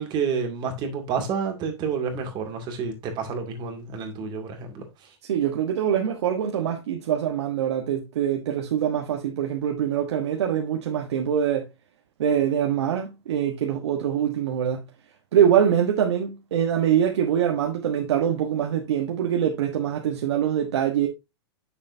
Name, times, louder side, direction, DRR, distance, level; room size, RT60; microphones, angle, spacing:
voice 1, 0.0-4.8, right 6 dB, 30° right, 2.4 m, -29 dB
voice 2, 5.2-11.7 12.2-14.8 15.3-21.1, right 9 dB, 80° right, 1.2 m, -24 dB
8.9 x 6.6 x 2.7 m
supercardioid pair, 145°, 14 cm